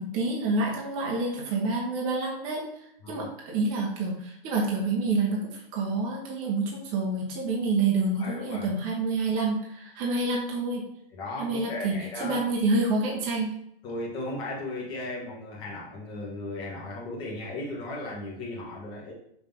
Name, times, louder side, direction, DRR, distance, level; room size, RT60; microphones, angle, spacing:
voice 1, 0.0-2.6 3.1-10.8 11.4-11.9 12.2-13.5, right 3 dB, 20° right, -2 dB, 0.8 m, -28 dB
voice 2, 8.1-8.7 11.1-12.4 13.8-19.1, left 2 dB, 15° left, -5 dB, 1.3 m, -36 dB
5.6 x 3.2 x 5.5 m, 0.74 s
hypercardioid pair, 160°, 30 cm